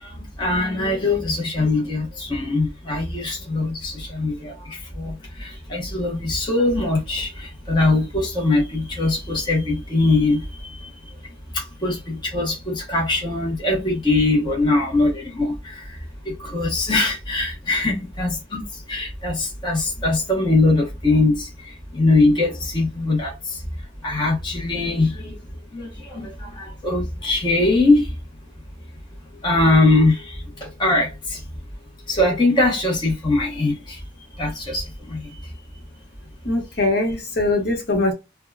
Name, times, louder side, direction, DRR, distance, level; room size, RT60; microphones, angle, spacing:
voice 1, 0.0-10.9 11.5-16.0 16.2-18.6 18.9-23.6 24.0-25.4 25.7-28.1 29.4-31.4 32.1-34.0 34.4-35.3, left 2 dB, 25° left, 0.8 m, -22 dB
voice 2, 36.4-38.1, left 2 dB, 55° left, 1.0 m, -21 dB
3.5 x 2.2 x 2.2 m
head